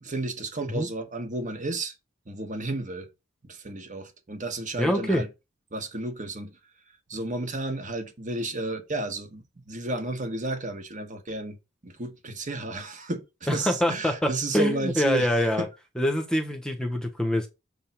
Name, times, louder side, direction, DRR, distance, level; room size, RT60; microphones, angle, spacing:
voice 1, 0.0-1.9 2.3-3.1 3.4-5.3 5.7-6.5 7.1-11.6 11.8-15.7, right 2 dB, 40° right, 1.2 m, -32 dB
voice 2, 4.8-5.2 13.5-15.7 16.0-17.5, left 1 dB, 5° left, 0.9 m, -25 dB
6.6 x 3.5 x 5.8 m
head